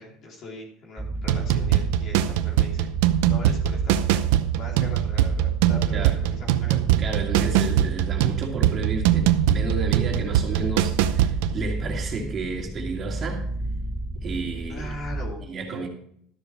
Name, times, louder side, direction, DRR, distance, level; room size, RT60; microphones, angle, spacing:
voice 1, 0.0-4.2 4.5-7.0 14.7-15.4, left 1 dB, 50° left, 0 dB, 3.4 m, -40 dB
sound 1, 1.0-15.3, right 1 dB, 5° right, 0.7 m, -32 dB
sound 2, 1.2-11.6, right 12 dB, 85° right, 0.6 m, -22 dB
voice 2, 7.0-13.4 14.2-15.0 15.5-15.9, right 4 dB, 35° right, 0 dB, 2.6 m, -31 dB
13.0 x 7.0 x 4.7 m, 0.64 s
cardioid pair, 130°, 0 cm